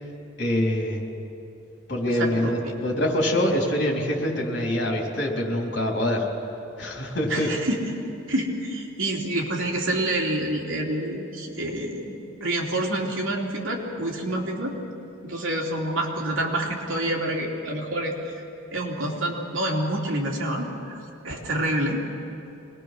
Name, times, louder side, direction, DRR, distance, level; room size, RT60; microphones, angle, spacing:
voice 1, 0.4-1.0 1.9-6.3 6.8-7.5, left 1 dB, 55° left, -1 dB, 4.0 m, -25 dB
voice 2, 2.1-2.5 7.3-7.8 8.3-12.1 12.4-14.8 15.2-18.1 18.7-21.0 21.2-22.0, right 1 dB, 70° right, -1 dB, 3.2 m, -27 dB
25.0 x 20.5 x 6.2 m, 2.9 s
head